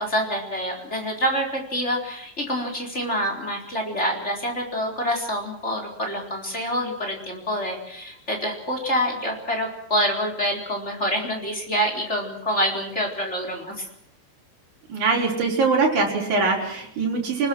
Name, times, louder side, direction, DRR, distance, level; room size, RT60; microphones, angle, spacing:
voice 1, 0.0-13.9, equal, 15° left, 1 dB, 4.2 m, -26 dB
voice 2, 14.9-17.5, right 4 dB, 50° right, -2 dB, 6.2 m, -22 dB
29.0 x 20.0 x 6.3 m, 0.73 s
omnidirectional pair, 4.4 m